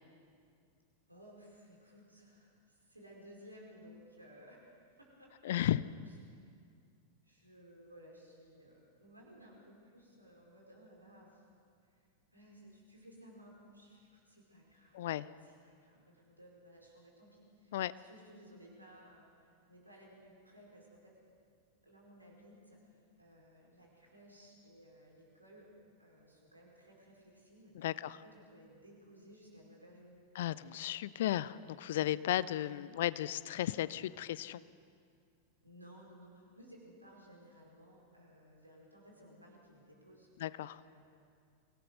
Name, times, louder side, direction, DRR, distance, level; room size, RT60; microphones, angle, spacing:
voice 1, 1.1-5.8 6.1-6.4 7.2-11.4 11.9-12.0 12.3-15.1 15.4-21.1 21.8-25.7 26.0-30.2 32.6-33.5 33.8-34.1 35.6-40.3 40.8-41.0, equal, 85° right, -2 dB, 4.9 m, -58 dB
voice 2, 5.4-5.8 14.9-15.3 17.7-17.9 27.8-28.2 30.4-34.6 40.4-40.8, left 13 dB, 55° left, 18 dB, 0.5 m, -34 dB
24.0 x 17.5 x 6.4 m, 2.2 s
figure-of-eight pair, 90°, 0 cm